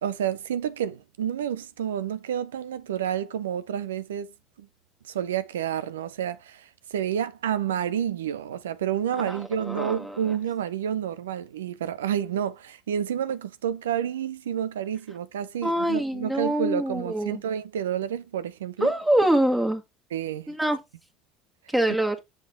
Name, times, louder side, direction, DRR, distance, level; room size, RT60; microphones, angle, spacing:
voice 1, 0.0-4.3 4.6-4.7 5.1-18.9 20.1-20.5, right 9 dB, 90° right, 0.6 m, -29 dB
voice 2, 9.2-10.4 15.6-17.4 18.8-19.8 20.5-20.8 21.7-22.2, right 1 dB, 10° right, 1.6 m, -25 dB
7.2 x 5.2 x 3.7 m
hypercardioid pair, 80°, 0 cm